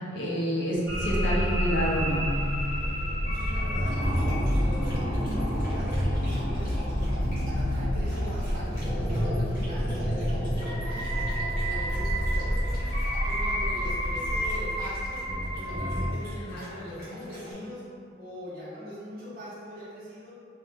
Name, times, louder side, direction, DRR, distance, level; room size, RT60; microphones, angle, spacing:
voice 1, 0.1-2.3 16.5-16.6, equal, 70° left, -5 dB, 0.5 m, -28 dB
sound 1, 0.9-16.1, equal, 25° left, 0.5 m, -28 dB
voice 2, 2.8-4.0 4.4-12.8 13.2-15.3 15.6-17.8 18.2-20.4, left 1 dB, 50° right, -10 dB, 0.6 m, -42 dB
Dog, 3.3-17.5, equal, 50° left, 0.9 m, -45 dB
2.1 x 2.1 x 3.2 m, 2.3 s
head